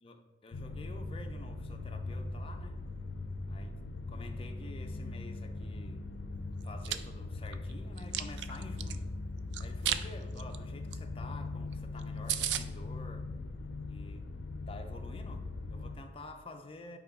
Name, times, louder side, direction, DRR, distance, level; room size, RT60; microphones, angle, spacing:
voice 1, 0.0-2.8 3.5-3.8 4.1-6.0 6.6-9.1 9.6-13.3 13.9-14.3 14.7-17.0, left 2 dB, 30° left, 5 dB, 0.6 m, -49 dB
sound 1, 0.5-16.0, left 2 dB, 80° left, 0.5 m, -40 dB
Chewing mastication, 6.6-7.0 7.5-9.0 9.5-10.0 10.4-10.6 10.9-11.0 11.3-11.4 11.7-11.8 12.0-12.1 12.3-12.6, right 11 dB, 75° right, 0.4 m, -33 dB
8.3 x 2.9 x 4.8 m, 1.3 s
head